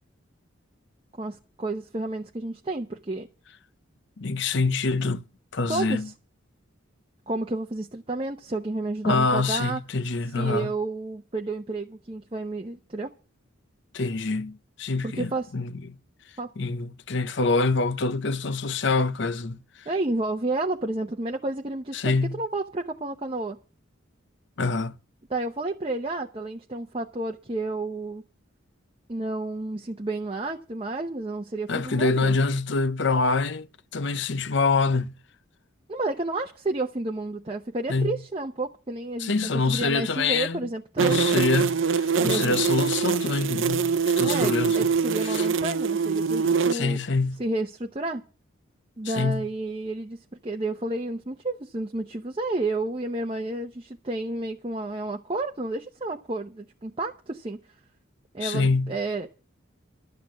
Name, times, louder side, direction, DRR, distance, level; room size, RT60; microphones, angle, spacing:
voice 1, 1.2-3.3 5.7-6.0 7.3-9.8 10.3-13.1 15.0-15.5 16.4-16.5 19.9-22.0 22.4-23.6 25.3-28.2 29.1-32.4 35.9-41.4 42.2-42.6 44.2-47.0 47.4-48.2 49.0-57.6 58.3-59.3, right 2 dB, 25° right, 0.8 m, -31 dB
voice 2, 4.2-5.2 5.5-6.1 9.0-10.7 13.9-16.0 16.6-19.9 21.9-22.4 24.6-25.0 31.7-33.7 33.9-35.1 37.9-38.2 39.2-40.6 41.0-44.9 45.2-45.5 46.7-47.4 49.0-49.5 58.4-58.9, left 3 dB, 60° left, 0.7 m, -25 dB
sound 1, 41.0-46.7, right 5 dB, 70° right, 0.6 m, -24 dB
12.0 x 8.2 x 7.4 m
head